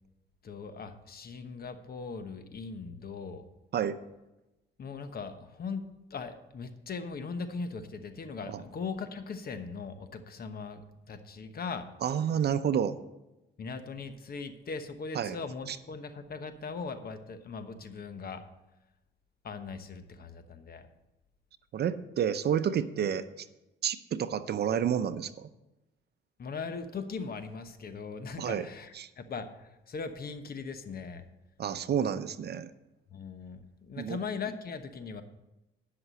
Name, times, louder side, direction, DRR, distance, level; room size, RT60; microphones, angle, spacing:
voice 1, 0.4-3.5 4.8-5.8 6.1-11.9 13.6-18.4 19.4-20.9 26.4-31.3 33.1-35.2, left 4 dB, 50° left, 9 dB, 1.1 m, -39 dB
voice 2, 12.0-13.0 15.1-15.4 15.7-15.8 21.7-23.5 23.8-25.5 28.4-28.7 29.0-29.1 31.6-32.7 34.0-34.2, right 8 dB, 55° right, 12 dB, 0.7 m, -30 dB
11.0 x 6.0 x 7.6 m, 0.98 s
cardioid pair, 90°, 20 cm